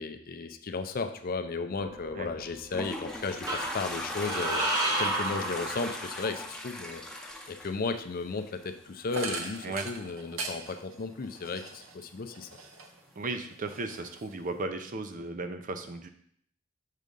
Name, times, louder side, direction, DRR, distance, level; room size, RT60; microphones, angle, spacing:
voice 1, 0.0-4.6 5.0-12.5, left 4 dB, 45° left, 8 dB, 0.5 m, -35 dB
sound 1, 1.8-2.6 3.5-6.3, right 1 dB, 20° right, 1.1 m, -32 dB
Toilet flush, 2.4-8.7, left 1 dB, 5° left, 0.7 m, -38 dB
sound 2, 9.1-13.1 13.5-14.6, right 4 dB, 75° right, 0.9 m, -40 dB
voice 2, 13.2-16.1, right 3 dB, 40° right, 8 dB, 0.6 m, -35 dB
6.6 x 3.7 x 5.3 m, 0.65 s
head